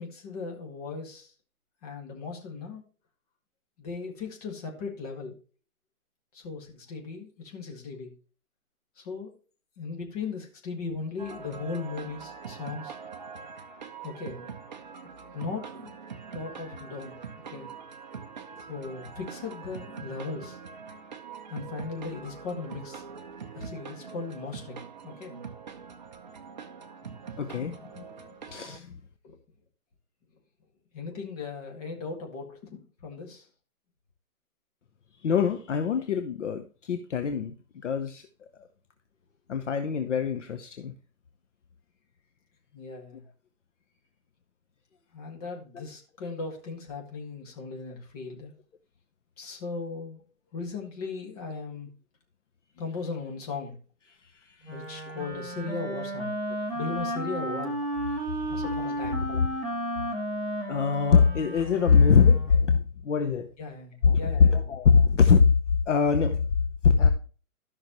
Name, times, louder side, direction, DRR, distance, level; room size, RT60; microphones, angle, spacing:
voice 1, 0.0-1.3 1.8-2.8 3.8-5.4 6.3-8.1 9.0-9.3 9.8-12.9 14.0-14.4 15.3-15.9 16.3-17.1 17.5-17.7 18.7-20.6 21.5-23.0 23.5-25.4 30.9-33.5 42.7-43.3 45.1-48.5 49.4-50.2 50.5-51.9 52.8-53.8 54.7-56.3 56.7-57.8 58.5-59.3 63.6-64.7, left 4 dB, 25° left, 1.9 m, -37 dB
sound 1, 11.2-28.8, right 6 dB, 30° right, 0.7 m, -43 dB
voice 2, 27.4-28.1 28.5-29.0 35.2-37.5 37.8-38.2 39.5-40.9 54.6-54.7 59.3-59.5 60.7-63.5 64.0-64.2 64.5-65.5 65.9-66.4 66.8-67.1, left 5 dB, 55° left, 1.0 m, -22 dB
Wind instrument woodwind instrument, 54.6-62.7, right 1 dB, ahead, 1.2 m, -33 dB
13.5 x 6.0 x 3.0 m
hypercardioid pair, 160°, 44 cm